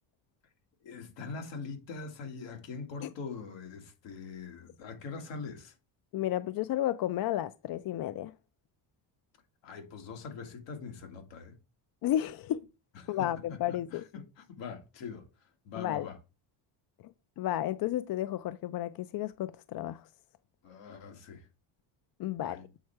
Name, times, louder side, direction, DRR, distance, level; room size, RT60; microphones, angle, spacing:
voice 1, 0.8-5.7 9.6-11.6 13.0-13.3 13.7-15.3 15.6-16.1 20.6-21.5 22.4-22.6, left 5 dB, 85° left, 2.2 m, -43 dB
voice 2, 6.1-8.3 12.0-12.7 13.1-14.0 15.7-16.1 17.4-20.1 22.2-22.6, left 13 dB, 55° left, 0.5 m, -32 dB
8.1 x 4.3 x 4.6 m
cardioid pair, 140°, 43 cm